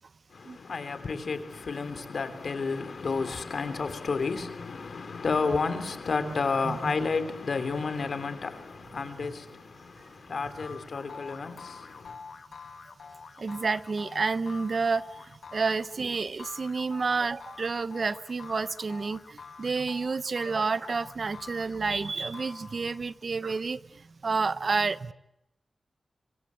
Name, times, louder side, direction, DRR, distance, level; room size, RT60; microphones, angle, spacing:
voice 1, 0.3-12.1, left 4 dB, 70° left, 3.2 m, -31 dB
voice 2, 6.3-6.8 13.4-15.0 15.5-23.8 24.2-25.1, right 4 dB, 60° right, 0.9 m, -29 dB
sound 1, 10.6-23.1, left 5 dB, 90° left, 2.2 m, -47 dB
25.5 x 24.5 x 8.0 m
wide cardioid pair, 90°, 0 cm